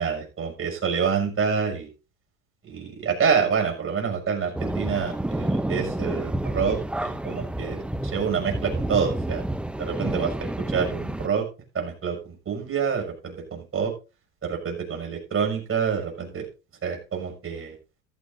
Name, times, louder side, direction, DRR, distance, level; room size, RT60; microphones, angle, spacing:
voice 1, 0.0-1.9 2.6-9.4 9.8-11.4 11.7-13.9 14.4-16.5 16.8-17.7, right 6 dB, 30° right, 1 dB, 6.3 m, -27 dB
sound 1, 4.5-11.3, right 1 dB, 5° right, 0.5 m, -29 dB
14.5 x 13.5 x 2.6 m, 0.32 s
hypercardioid pair, 85°, 42 cm